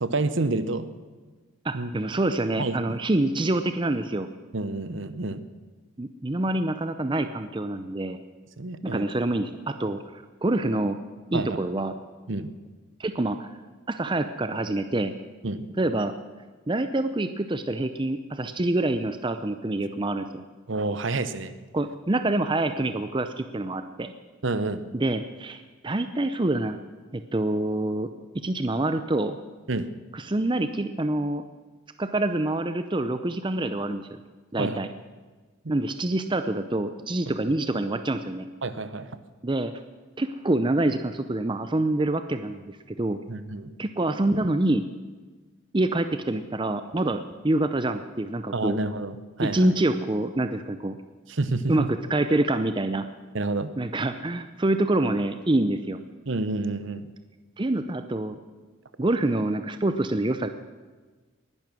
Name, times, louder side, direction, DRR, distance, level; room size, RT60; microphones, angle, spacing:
voice 1, 0.0-0.9 1.7-1.9 2.6-3.0 4.5-5.4 8.6-9.1 11.3-11.6 12.3-12.5 15.4-15.7 20.7-21.5 24.4-24.8 29.7-29.9 34.6-34.8 35.6-35.7 38.6-39.2 43.3-43.7 48.5-49.6 51.3-51.9 53.3-53.7 56.3-57.1, right 2 dB, 60° right, 13 dB, 0.9 m, -29 dB
voice 2, 1.6-4.3 6.0-8.2 8.8-11.0 11.3-11.9 13.0-13.5 13.9-15.1 15.8-16.1 16.7-20.4 21.7-24.1 24.9-26.8 27.1-28.1 28.4-29.4 30.1-31.4 32.0-34.2 34.5-34.9 35.7-38.5 39.4-39.7 40.2-43.2 43.8-44.8 45.7-48.8 49.4-51.0 51.7-53.1 53.8-56.0 57.6-58.4 59.0-60.5, right 2 dB, 20° right, 9 dB, 0.6 m, -26 dB
20.0 x 11.0 x 6.2 m, 1.3 s
head